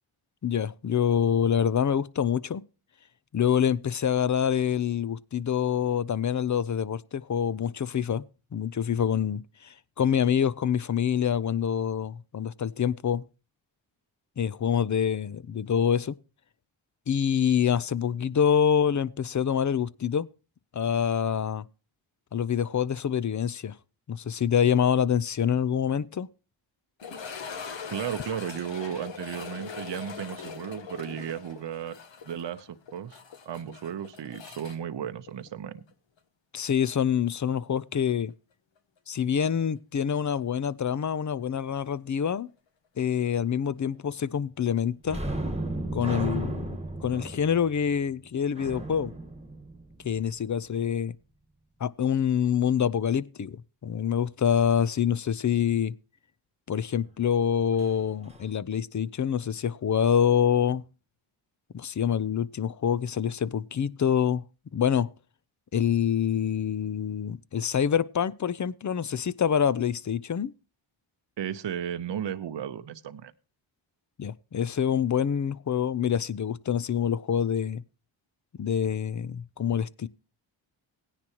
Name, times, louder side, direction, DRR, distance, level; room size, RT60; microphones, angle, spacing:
voice 1, 0.4-2.6 3.3-8.2 8.5-13.2 14.4-16.2 17.1-20.3 20.7-21.6 22.3-23.7 24.1-26.3 36.5-38.3 39.1-42.5 43.0-45.2 45.9-49.1 50.0-51.1 51.8-55.9 56.7-60.8 61.7-64.4 64.7-65.1 65.7-70.5 74.2-77.8 78.6-80.1, left 8 dB, 35° left, 0.6 m, -26 dB
sound 1, 27.0-35.9 36.2-36.3 36.9-37.0 39.6-39.7, left 6 dB, 60° left, 1.3 m, -41 dB
voice 2, 27.9-32.0 32.3-33.2 33.5-35.8 71.4-73.3, right 9 dB, 60° right, 0.9 m, -34 dB
sound 2, 45.0-50.4 57.8-57.9 58.3-58.5, right 2 dB, 15° right, 1.4 m, -35 dB
17.0 x 10.0 x 3.0 m
cardioid pair, 50°, 50 cm